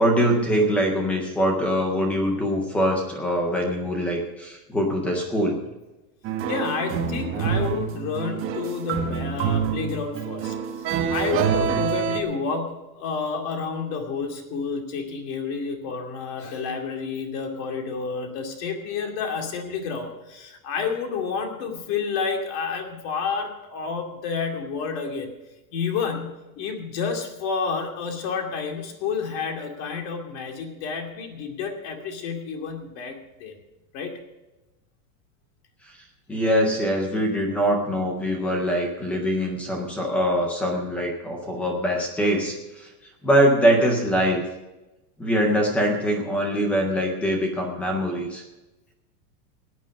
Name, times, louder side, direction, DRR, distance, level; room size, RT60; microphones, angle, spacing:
voice 1, 0.0-5.6 36.3-42.9 43.2-44.4 45.2-48.4, equal, 5° left, 1 dB, 0.4 m, -23 dB
sound 1, 6.2-12.2, right 8 dB, 25° right, 1.2 m, -26 dB
voice 2, 6.5-25.3 25.7-33.5 33.9-34.2, left 5 dB, 40° left, 4 dB, 2.5 m, -30 dB
16.5 x 10.0 x 5.2 m, 1.0 s
supercardioid pair, 170°, 50 cm